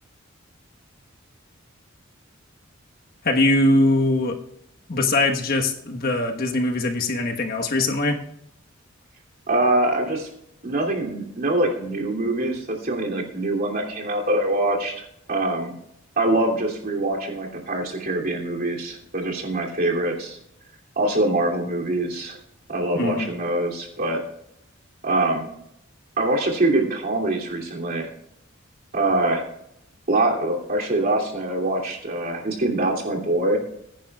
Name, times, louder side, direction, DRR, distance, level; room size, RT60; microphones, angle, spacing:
voice 1, 3.2-4.4 4.9-8.2 22.9-23.3, left 2 dB, 50° left, 3 dB, 1.3 m, -21 dB
voice 2, 9.5-10.3 10.6-15.7 16.2-20.4 21.0-22.4 22.7-24.2 25.0-25.5 26.2-28.1 28.9-29.4 30.1-33.6, right 2 dB, 50° right, -1 dB, 2.9 m, -24 dB
21.5 x 10.0 x 2.4 m, 0.77 s
head